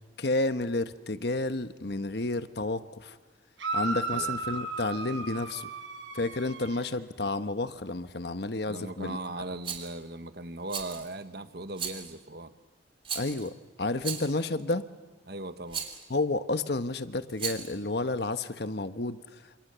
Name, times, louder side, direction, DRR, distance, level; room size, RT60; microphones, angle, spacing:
voice 1, 0.2-3.2 3.7-5.7 6.1-9.2 13.1-14.8 16.1-19.6, left 2 dB, 60° left, 11 dB, 1.2 m, -31 dB
sound 1, 3.6-6.9, right 3 dB, 80° right, 5.7 m, -35 dB
voice 2, 8.7-12.5 15.3-15.8, right 2 dB, 55° right, 10 dB, 1.4 m, -38 dB
Rattle, 9.6-9.9 10.7-11.1 11.7-12.1 13.0-13.5 14.0-14.4 15.7-16.0 17.3-17.8, right 7 dB, 30° right, 3.0 m, -36 dB
29.0 x 27.5 x 6.9 m, 1.3 s
head